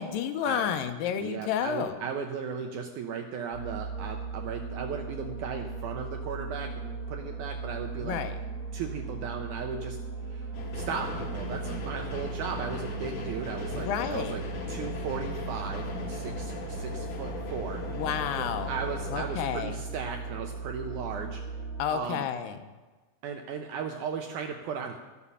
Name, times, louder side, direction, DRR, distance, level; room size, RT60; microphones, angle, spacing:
voice 1, 0.0-2.0 8.0-8.3 13.7-14.4 17.9-18.7 19.1-19.8 21.8-22.6, left 8 dB, 80° left, 8 dB, 2.3 m, -31 dB
voice 2, 1.1-8.2 8.7-10.0 10.3-14.4 14.7-17.8 18.4-21.4 21.9-22.3 23.2-25.0, right 6 dB, 80° right, 4 dB, 1.8 m, -36 dB
sound 1, 3.5-21.8, right 4 dB, 30° left, 1.2 m, -37 dB
sound 2, 10.5-19.2, left 4 dB, 60° left, 2.5 m, -39 dB
12.5 x 7.1 x 5.5 m, 1.2 s
omnidirectional pair, 4.1 m